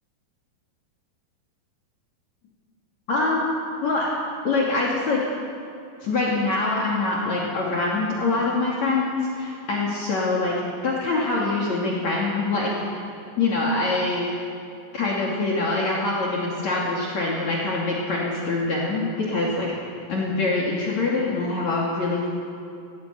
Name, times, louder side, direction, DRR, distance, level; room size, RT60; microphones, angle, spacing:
voice 1, 3.1-3.5 3.8-4.1 4.4-5.2 6.0-10.6 10.8-13.1 13.4-14.3 14.9-19.8 20.1-22.3, left 3 dB, 50° left, -4 dB, 3.7 m, -24 dB
18.5 x 18.5 x 8.5 m, 2.5 s
omnidirectional pair, 4.2 m